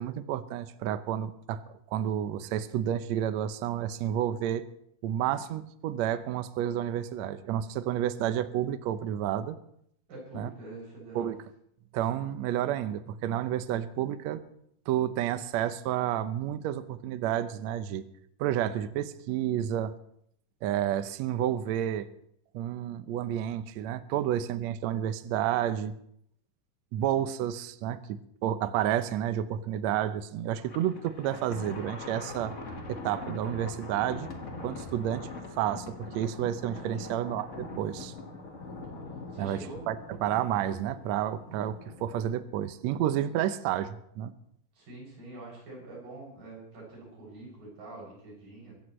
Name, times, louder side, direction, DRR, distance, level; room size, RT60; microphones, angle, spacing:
voice 1, 0.0-1.6 1.9-4.6 5.0-9.6 10.3-10.5 11.1-11.3 11.9-14.4 14.9-18.0 18.4-19.9 20.6-22.1 22.5-25.9 26.9-32.5 32.9-34.3 34.6-38.1 39.4-39.6 39.9-40.0 40.2-44.3, right 11 dB, 90° right, 11 dB, 1.5 m, -30 dB
voice 2, 10.1-11.3 36.9-37.3 39.3-39.8 44.8-48.7, right 2 dB, 65° right, -3 dB, 8.7 m, -45 dB
Thunder, 30.5-42.3, left 3 dB, 45° left, 1.0 m, -42 dB
24.5 x 14.0 x 3.2 m, 0.70 s
omnidirectional pair, 4.3 m